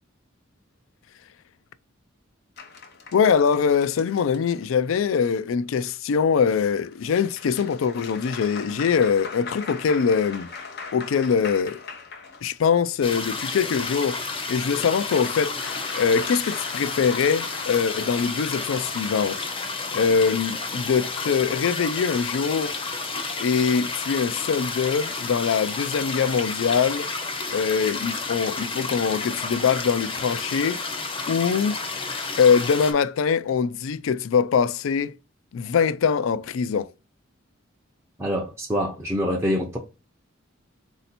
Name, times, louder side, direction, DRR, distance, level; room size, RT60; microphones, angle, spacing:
sound 1, 2.6-5.0 6.8-12.8 13.7-19.1, left 5 dB, 55° left, 0.9 m, -40 dB
voice 1, 3.1-10.5 10.9-11.8 12.4-14.2 14.5-15.6 16.0-19.4 19.9-22.8 23.4-27.1 27.5-30.8 31.3-31.8 32.4-35.1 35.5-36.9, left 6 dB, 75° left, 0.4 m, -23 dB
sound 2, 13.0-32.9, left 4 dB, 25° left, 0.6 m, -31 dB
voice 2, 38.2-39.8, equal, 15° right, 0.5 m, -25 dB
4.3 x 2.7 x 4.2 m
head